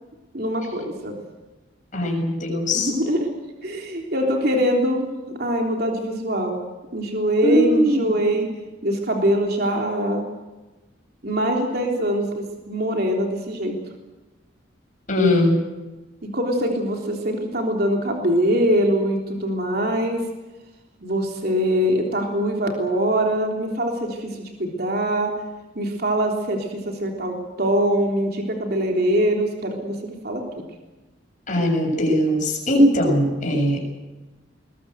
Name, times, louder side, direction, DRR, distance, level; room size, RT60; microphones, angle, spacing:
voice 1, 0.3-1.2 2.7-3.3 3.6-5.1 5.4-6.6 6.9-8.5 8.8-10.2 11.2-13.8 16.2-20.2 21.0-25.3 25.8-30.6, equal, 50° right, 1 dB, 3.5 m, -23 dB
voice 2, 1.9-2.9 7.4-8.2 15.1-15.6 31.5-33.8, equal, 40° left, 1 dB, 7.3 m, -20 dB
21.5 x 21.5 x 8.0 m, 1.1 s
head